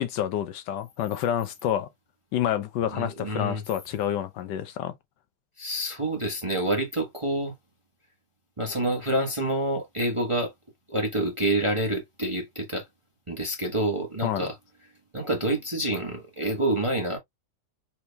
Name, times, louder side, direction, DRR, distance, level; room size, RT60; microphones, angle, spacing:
voice 1, 0.0-1.9 2.3-4.9 14.2-14.5, left 10 dB, 75° left, 1.2 m, -28 dB
voice 2, 2.9-3.6 5.6-7.5 8.6-10.5 10.9-12.8 13.3-14.5 15.1-17.2, right 1 dB, 25° right, 0.8 m, -27 dB
5.0 x 4.4 x 2.2 m
omnidirectional pair, 2.0 m